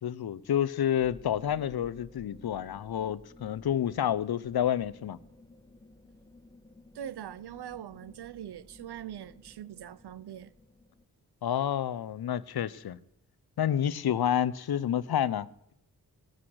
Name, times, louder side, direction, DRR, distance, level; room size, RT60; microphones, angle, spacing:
voice 1, 0.0-5.2 11.4-13.0 13.6-15.7, left 10 dB, 75° left, 0.7 m, -29 dB
sound 1, 1.0-11.1, left 2 dB, 10° left, 1.8 m, -55 dB
voice 2, 6.9-10.5, right 10 dB, 85° right, 0.7 m, -42 dB
17.5 x 8.7 x 6.4 m
cardioid pair, 40°, 38 cm